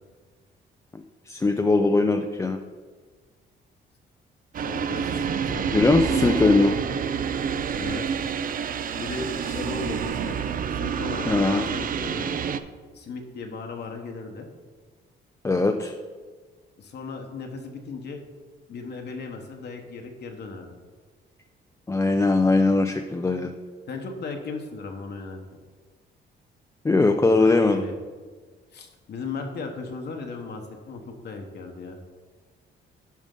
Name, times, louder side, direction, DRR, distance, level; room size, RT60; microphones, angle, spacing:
voice 1, 1.3-2.6 5.7-6.8 11.3-11.7 15.4-15.9 21.9-23.5 26.8-27.8, left 3 dB, 15° left, 5 dB, 0.4 m, -20 dB
sound 1, 4.5-12.6, right 7 dB, 45° right, 0.5 m, -28 dB
voice 2, 4.6-5.9 7.7-8.0 9.0-10.4 10.7-12.3 12.9-14.5 16.8-18.2 18.7-20.7 23.9-25.4 27.3-27.9 28.7-32.0, left 4 dB, 60° left, 3 dB, 1.1 m, -36 dB
10.5 x 5.2 x 3.8 m, 1.4 s
cardioid pair, 90°, 20 cm